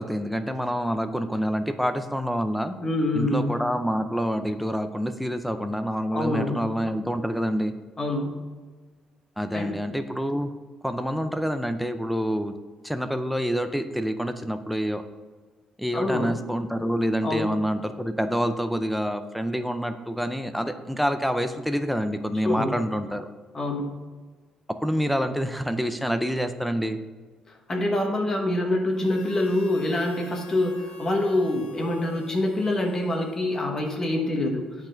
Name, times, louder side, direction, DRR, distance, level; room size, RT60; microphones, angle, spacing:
voice 1, 0.0-2.7 3.1-7.7 9.4-10.5 10.8-12.6 12.8-15.0 15.8-23.3 24.8-27.0, equal, ahead, 8 dB, 0.4 m, -27 dB
voice 2, 2.8-3.5 6.1-6.8 8.0-8.4 9.5-9.7 15.9-16.3 17.2-17.5 22.4-22.7 23.5-24.0 27.7-34.7, left 1 dB, 25° left, 2 dB, 1.0 m, -26 dB
Harmonica, 28.9-33.8, left 3 dB, 80° left, 1.2 m, -48 dB
8.8 x 4.1 x 5.2 m, 1.4 s
cardioid pair, 145°, 2 cm